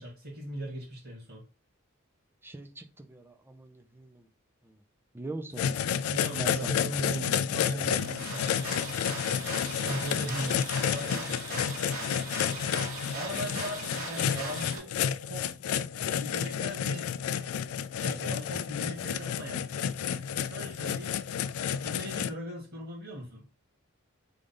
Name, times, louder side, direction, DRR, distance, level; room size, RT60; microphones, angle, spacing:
voice 1, 0.0-1.4 5.8-8.8 9.8-11.7 13.1-14.9 15.2-15.6 16.2-17.1 18.0-19.8 20.4-21.2 21.8-23.5, equal, 60° right, 2.0 m, -39 dB
voice 2, 2.4-4.3 4.6-4.8 5.1-5.7 6.4-6.7 9.7-9.9, right 2 dB, 10° right, 0.5 m, -42 dB
sound 1, 5.6-22.3, left 8 dB, 85° left, 0.3 m, -31 dB
sound 2, 7.8-14.8, right 2 dB, 80° right, 2.1 m, -39 dB
3.9 x 3.3 x 3.7 m
head